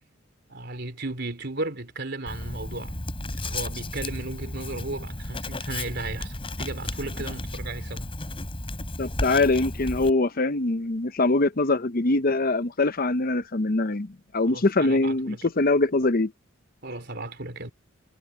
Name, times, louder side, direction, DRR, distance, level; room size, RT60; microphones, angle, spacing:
voice 1, 0.5-3.0 3.4-8.1 14.5-15.5 16.8-17.7, right 2 dB, 55° right, 3.8 m, -35 dB
Writing, 2.3-10.1, left 1 dB, 25° left, 4.9 m, -33 dB
voice 2, 9.0-16.3, left 2 dB, 45° left, 0.8 m, -23 dB
head